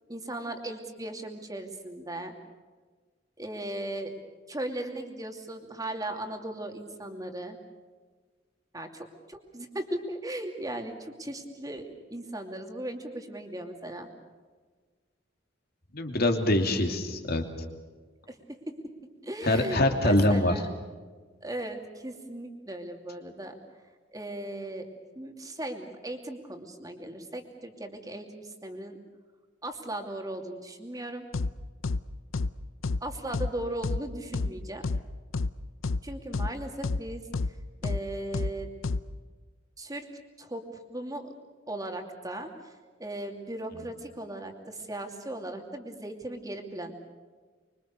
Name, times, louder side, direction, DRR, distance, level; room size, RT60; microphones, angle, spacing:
voice 1, 0.1-2.3 3.4-4.1 4.5-7.6 8.7-14.1 18.3-18.4 19.2-20.7 21.4-23.5 24.1-24.9 25.2-29.0 29.6-31.3 33.0-34.8 36.0-37.3 37.8-38.7 39.8-40.1 40.4-41.3 41.7-42.5 43.0-46.9, right 1 dB, 20° right, 4 dB, 2.7 m, -37 dB
voice 2, 15.9-17.4 19.4-20.5, left 1 dB, 50° left, 4 dB, 2.9 m, -24 dB
sound 1, 31.3-31.5 31.8-32.0 32.3-32.5 32.8-33.0 33.3-33.5 33.8-34.0 34.3-34.5 34.8-35.0 35.3-35.5 35.8-36.0 36.3-36.5 36.8-37.0 37.3-37.5 37.8-38.0 38.3-38.5 38.8-39.0, left 3 dB, 85° left, 0.7 m, -28 dB
25.5 x 24.0 x 6.7 m, 1.4 s
head